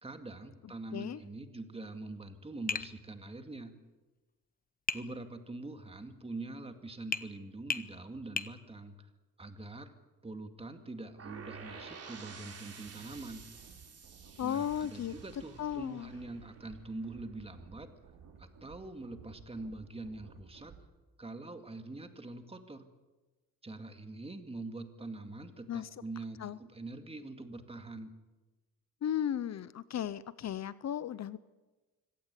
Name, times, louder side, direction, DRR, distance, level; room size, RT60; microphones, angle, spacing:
voice 1, 0.0-3.8 4.9-9.1 9.4-9.9 10.2-13.4 14.4-17.9 18.4-20.7 21.2-22.9 23.6-28.1, right 2 dB, 15° right, 7 dB, 2.1 m, -44 dB
Tap, 2.7-2.9 4.9-5.1 7.1-7.3 7.7-7.9 8.4-8.5, left 5 dB, 25° left, 0.8 m, -33 dB
sound 1, 11.2-17.1, right 5 dB, 45° right, 3.7 m, -51 dB
sound 2, 12.8-20.8, right 6 dB, 65° right, 3.7 m, -56 dB
voice 2, 14.4-15.1 15.6-16.1 25.7-25.9 26.4-26.6 29.0-31.4, left 10 dB, 50° left, 17 dB, 0.7 m, -35 dB
24.5 x 17.5 x 8.3 m, 1.2 s
cardioid pair, 120°, 34 cm